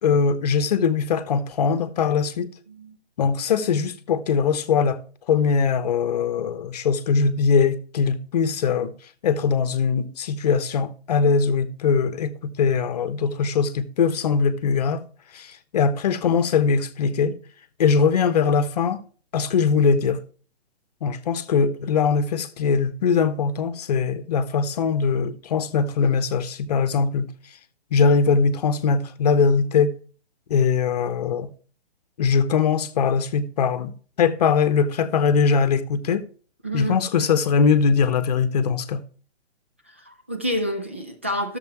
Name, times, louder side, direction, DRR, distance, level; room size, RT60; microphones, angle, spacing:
voice 1, 0.0-2.5 3.2-5.0 5.3-8.9 9.2-15.0 15.3-17.4 17.8-19.0 19.3-20.2 21.0-27.3 27.9-29.9 30.5-31.5 32.2-33.9 34.2-36.3 36.7-39.0, left 5 dB, 35° left, 0.9 m, -21 dB
voice 2, 36.6-37.0 40.1-41.6, equal, 10° right, 0.3 m, -28 dB
15.0 x 6.9 x 3.1 m
figure-of-eight pair, 135°, 33 cm